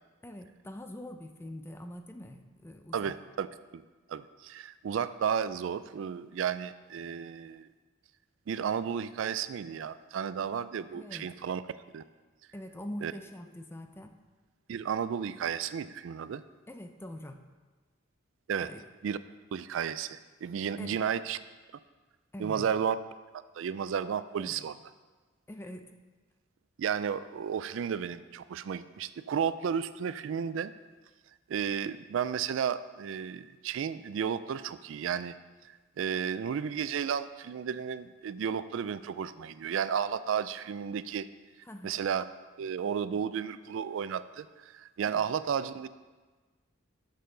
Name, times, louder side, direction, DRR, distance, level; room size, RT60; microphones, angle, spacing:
voice 1, 0.2-3.2 10.9-11.3 12.5-14.1 16.7-17.4 18.6-18.8 20.8-21.0 22.3-22.7 24.4-24.7 25.5-25.9 41.6-42.0 45.1-45.2, left 1 dB, 10° left, 6 dB, 0.5 m, -44 dB
voice 2, 2.9-3.5 3.7-3.8 4.1-7.7 8.5-11.6 11.9-12.0 13.0-13.1 14.7-16.4 18.5-18.7 19.0-19.2 19.5-21.4 22.4-23.0 23.6-24.7 26.8-30.7 31.5-35.3 36.0-41.3 41.8-42.2 42.6-44.5 44.7-45.9, right 7 dB, 65° right, 14 dB, 0.3 m, -33 dB
12.0 x 6.6 x 3.8 m, 1.3 s
head